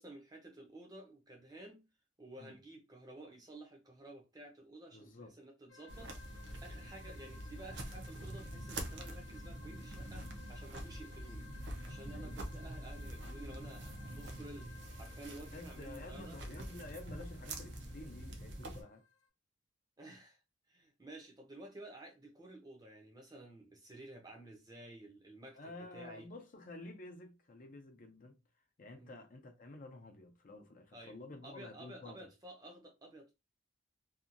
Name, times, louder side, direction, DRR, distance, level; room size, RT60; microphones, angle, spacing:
voice 1, 0.0-1.8 2.2-11.5 11.8-16.4 20.0-20.4 20.7-26.3 29.0-29.2 30.9-31.2 31.4-33.3, right 2 dB, 20° right, 0.6 m, -53 dB
voice 2, 4.9-5.3 12.1-12.3 15.5-19.0 25.6-28.4 28.8-32.3, left 2 dB, 45° left, 0.5 m, -51 dB
sound 1, 5.7-19.3, left 5 dB, 75° left, 0.8 m, -59 dB
sound 2, 5.9-18.8, right 1 dB, 60° right, 0.6 m, -46 dB
2.8 x 2.3 x 2.5 m
head